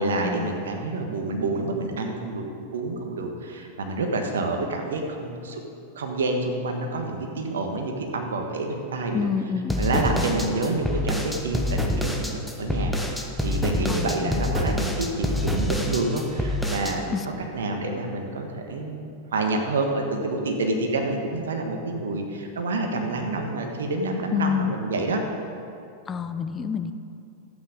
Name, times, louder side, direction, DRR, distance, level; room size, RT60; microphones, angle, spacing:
voice 1, 0.0-2.4 2.7-5.6 5.9-9.3 9.8-17.2 17.5-25.2, right 2 dB, 75° right, 3 dB, 1.4 m, -28 dB
voice 2, 9.1-10.3 13.9-14.6 17.1-17.2 24.3-24.7 26.1-26.9, left 6 dB, 25° left, 9 dB, 0.7 m, -28 dB
sound 1, 9.7-17.0, left 1 dB, ahead, 1.1 m, -26 dB
12.0 x 8.6 x 5.1 m, 2.5 s
figure-of-eight pair, 95°, 0 cm